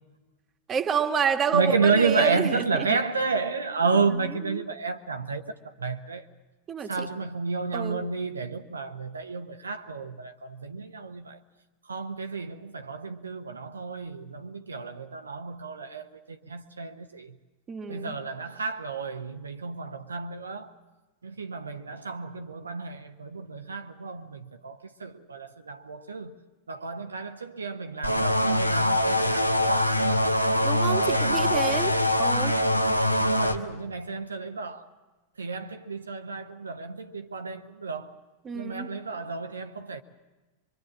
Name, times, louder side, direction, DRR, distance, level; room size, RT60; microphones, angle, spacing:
voice 1, 0.7-3.0 4.1-4.6 6.7-7.1 7.7-8.0 17.7-18.2 30.6-32.6 38.4-38.9, right 7 dB, 25° right, 1.7 m, -29 dB
voice 2, 1.5-6.2 6.9-11.4 11.9-17.3 17.9-20.7 21.2-26.3 26.7-29.9 31.0-31.8 33.3-34.9 35.4-38.2 38.5-40.0, right 4 dB, 75° right, 0.9 m, -31 dB
sound 1, 28.0-33.6, left 1 dB, 90° left, 1.1 m, -23 dB
24.5 x 24.0 x 7.4 m
figure-of-eight pair, 90°, 0 cm